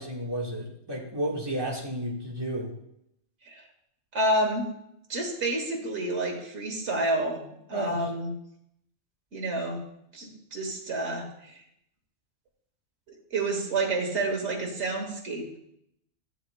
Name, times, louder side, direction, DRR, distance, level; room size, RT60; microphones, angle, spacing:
voice 1, 0.0-2.7 7.7-8.1, right 1 dB, 20° right, -2 dB, 1.6 m, -32 dB
voice 2, 4.1-4.7 5.1-8.3 9.3-9.8 10.1-11.6 13.1-15.6, right 2 dB, 80° right, 0 dB, 1.6 m, -29 dB
12.0 x 8.1 x 2.2 m, 0.75 s
omnidirectional pair, 1.2 m